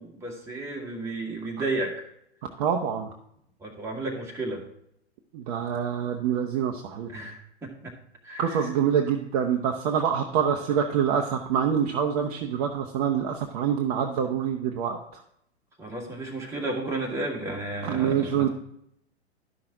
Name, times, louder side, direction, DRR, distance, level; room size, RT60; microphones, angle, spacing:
voice 1, 0.0-2.0 3.6-4.6 7.1-7.9 8.2-8.6 15.8-18.5, right 2 dB, 10° right, -2 dB, 1.7 m, -33 dB
voice 2, 2.6-3.1 5.3-7.1 8.4-15.2 17.8-18.5, right 8 dB, 35° right, 2 dB, 0.7 m, -26 dB
12.0 x 5.8 x 3.7 m, 0.73 s
figure-of-eight pair, 105°, 34 cm